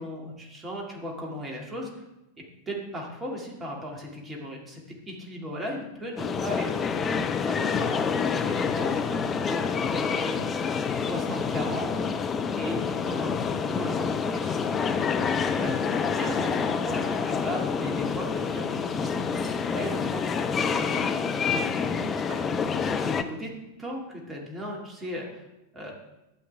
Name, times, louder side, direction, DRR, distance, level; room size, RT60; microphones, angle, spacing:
voice 1, 0.0-1.9 2.7-4.8 5.1-8.1 8.4-9.2 9.5-10.4 10.9-12.0 12.5-15.8 16.2-21.0 21.5-23.5 23.8-25.5 25.7-25.9, equal, 15° right, -1 dB, 2.3 m, -37 dB
sound 1, 6.2-23.2, left 6 dB, 20° left, 0.6 m, -27 dB
12.0 x 7.9 x 3.5 m, 0.93 s
figure-of-eight pair, 90°, 0 cm